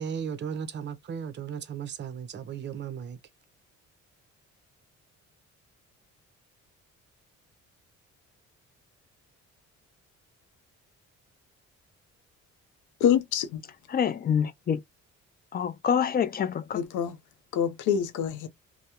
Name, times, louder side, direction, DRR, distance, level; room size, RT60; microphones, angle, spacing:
voice 1, 0.0-3.2, right 7 dB, 40° right, 0.5 m, -35 dB
voice 2, 13.0-13.6 16.7-17.2 17.5-18.5, left 8 dB, 85° left, 0.6 m, -26 dB
voice 3, 13.9-14.8 15.5-16.8, left 8 dB, 30° left, 0.4 m, -26 dB
2.2 x 2.1 x 2.8 m
cardioid pair, 90°, 30 cm